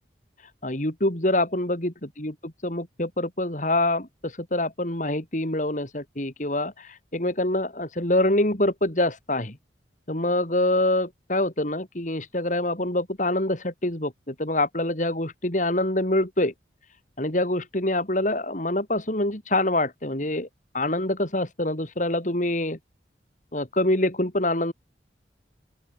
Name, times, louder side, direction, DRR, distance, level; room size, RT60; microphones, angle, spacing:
voice 1, 0.6-9.6 10.1-16.5 17.2-20.5 20.7-22.8 23.5-24.7, left 1 dB, 45° left, 3.6 m, -25 dB
open air
head